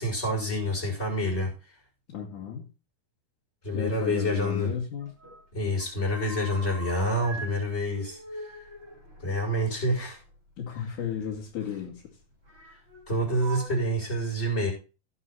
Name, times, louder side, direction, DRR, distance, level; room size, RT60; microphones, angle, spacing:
voice 1, 0.0-1.5 3.6-4.7 5.5-8.2 9.2-10.2 13.1-14.7, equal, 15° left, -1 dB, 6.7 m, -27 dB
voice 2, 2.1-2.7 3.7-5.1 10.6-12.0, left 8 dB, 55° left, -4 dB, 3.5 m, -34 dB
sound 1, 4.5-5.4 5.7-7.5 7.8-10.3 11.4-11.5 12.5-13.0 13.4-13.7, right 2 dB, 15° right, 5.7 m, -43 dB
18.0 x 6.8 x 4.2 m, 0.33 s
omnidirectional pair, 4.5 m